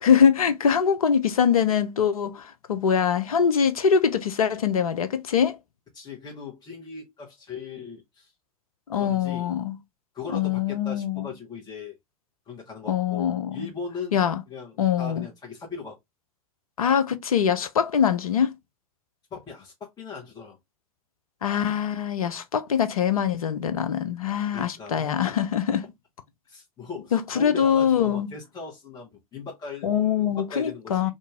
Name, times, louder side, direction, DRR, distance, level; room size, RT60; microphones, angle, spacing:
voice 1, 0.0-5.6 8.9-9.8 10.3-11.3 12.9-13.7 14.1-14.4 14.8-15.3 16.8-18.5 21.4-25.8 27.1-28.3 29.8-31.1, left 7 dB, 70° left, 0.6 m, -23 dB
voice 2, 5.9-8.3 8.9-9.5 10.1-12.0 12.5-14.2 14.5-16.0 19.3-20.6 24.5-25.4 26.5-29.9 30.3-31.1, left 5 dB, 20° left, 1.3 m, -39 dB
2.7 x 2.6 x 3.6 m
figure-of-eight pair, 90°, 19 cm